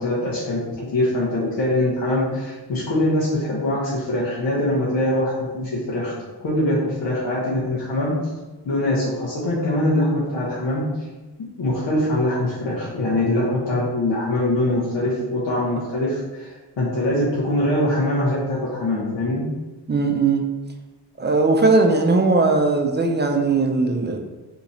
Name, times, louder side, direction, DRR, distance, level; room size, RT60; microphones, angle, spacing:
voice 1, 0.0-6.2 6.4-8.2 8.6-10.9 11.6-19.5, left 1 dB, 70° left, -7 dB, 1.0 m, -23 dB
voice 2, 19.9-20.5 21.2-24.2, right 3 dB, 25° right, 3 dB, 0.4 m, -19 dB
2.9 x 2.4 x 4.1 m, 1.2 s
cardioid pair, 80°, 43 cm